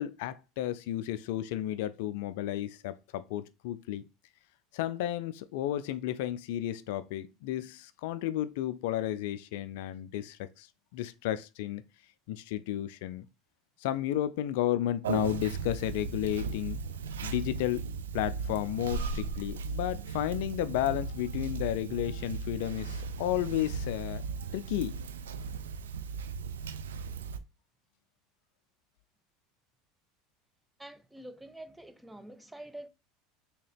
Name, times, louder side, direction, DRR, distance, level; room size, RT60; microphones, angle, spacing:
voice 1, 0.0-4.0 4.7-10.7 10.9-11.8 12.3-13.3 13.8-16.8 17.2-17.8 18.1-24.2 24.5-25.0, left 13 dB, 70° left, 0.3 m, -32 dB
Conversation, 15.0-27.4, right 5 dB, 85° right, 0.3 m, -37 dB
voice 2, 30.8-32.9, right 1 dB, 5° right, 0.5 m, -46 dB
3.7 x 2.8 x 3.3 m
hypercardioid pair, 85°, 0 cm